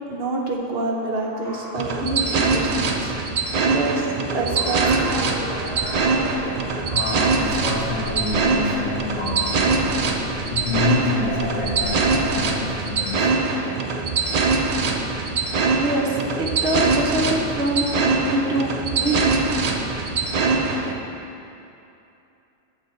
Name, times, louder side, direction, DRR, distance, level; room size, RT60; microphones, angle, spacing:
voice 1, 0.1-3.1 3.6-4.1 4.3-5.1 15.4-15.5 15.8-17.9 18.2-19.3, right 2 dB, 55° right, 0 dB, 1.0 m, -25 dB
sound 1, 1.2-3.8 4.2-9.3, equal, 30° right, 1.3 m, -37 dB
sound 2, 1.8-20.9, right 3 dB, 75° right, 0.3 m, -23 dB
sound 3, 5.4-12.9, left 1 dB, 50° left, 2.2 m, -36 dB
voice 2, 6.9-13.4, left 3 dB, 75° left, -4 dB, 1.7 m, -28 dB
7.9 x 5.9 x 4.4 m, 2.8 s
omnidirectional pair, 1.4 m